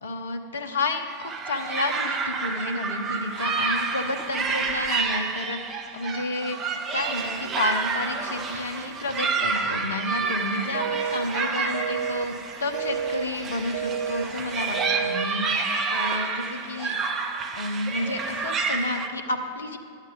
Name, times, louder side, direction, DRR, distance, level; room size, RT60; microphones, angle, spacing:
voice 1, 0.0-5.6 5.9-12.3 12.6-17.0 17.6-19.8, left 2 dB, 70° left, 6 dB, 0.8 m, -31 dB
sound 1, 1.1-19.1, right 4 dB, 25° right, 0.8 m, -29 dB
sound 2, 10.7-11.2 11.7-12.2 12.7-13.2 13.7-14.2 14.7-15.2, right 7 dB, 60° right, 0.5 m, -29 dB
11.0 x 8.1 x 3.8 m, 2.2 s
figure-of-eight pair, 90°, 0 cm